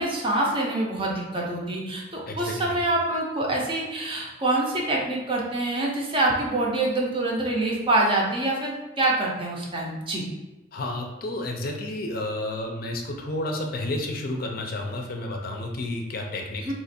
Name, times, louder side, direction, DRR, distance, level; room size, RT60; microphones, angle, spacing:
voice 1, 0.0-10.3 16.6-16.7, right 2 dB, 30° right, -2 dB, 0.6 m, -25 dB
voice 2, 2.3-2.8 10.7-16.7, left 1 dB, 50° left, 2 dB, 0.5 m, -31 dB
2.9 x 2.4 x 4.2 m, 1.1 s
head